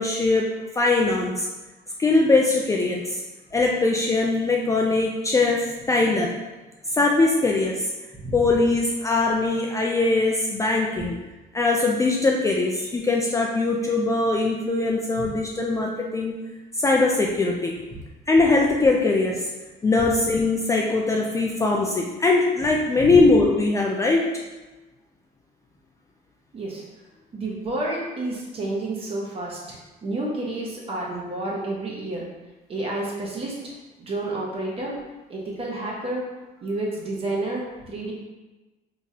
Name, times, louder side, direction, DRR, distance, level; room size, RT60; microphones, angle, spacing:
voice 1, 0.0-1.5 2.0-3.2 3.5-6.4 6.9-7.9 8.3-11.2 11.5-16.4 16.8-17.8 18.3-19.5 19.8-24.3, left 3 dB, 20° left, -1 dB, 0.3 m, -21 dB
voice 2, 27.3-32.3 32.7-33.7 34.0-35.0 35.3-36.2 36.6-38.1, right 2 dB, 35° right, -4 dB, 1.1 m, -30 dB
3.6 x 3.0 x 2.8 m, 1.2 s
cardioid pair, 110°, 17 cm